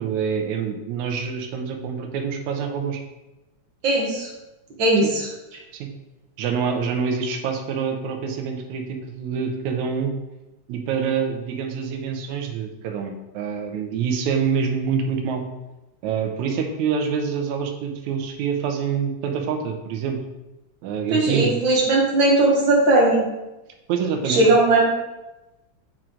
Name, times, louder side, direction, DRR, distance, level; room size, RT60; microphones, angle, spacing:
voice 1, 0.0-3.0 5.0-5.1 5.7-5.9 6.4-10.1 10.7-15.4 16.0-20.2 20.8-21.6 23.9-24.5, right 6 dB, 80° right, 4 dB, 2.1 m, -26 dB
voice 2, 3.8-4.3 4.8-5.3 21.1-23.3 24.3-24.9, right 2 dB, 50° right, -2 dB, 1.6 m, -18 dB
7.6 x 4.5 x 3.7 m, 1.0 s
omnidirectional pair, 3.3 m